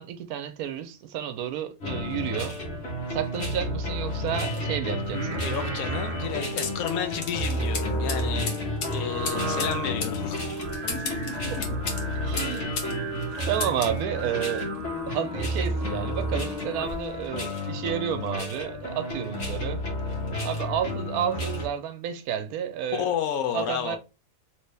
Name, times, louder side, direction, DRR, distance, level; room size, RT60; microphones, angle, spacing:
voice 1, 0.0-2.6 3.1-5.4 12.2-12.7 13.4-14.7 15.1-19.8 20.4-23.1 23.5-24.0, right 9 dB, 75° right, 1.0 m, -31 dB
sound 1, 1.8-21.7, equal, 50° left, 1.3 m, -31 dB
Singing, 5.0-17.2, equal, 40° right, 0.6 m, -37 dB
voice 2, 5.4-8.6 8.9-10.4 10.9-11.5 22.9-24.0, left 8 dB, 70° left, 1.0 m, -31 dB
sound 2, 6.6-13.0 13.2-14.0, left 4 dB, 90° left, 1.5 m, -35 dB
3.1 x 2.7 x 3.2 m
omnidirectional pair, 1.6 m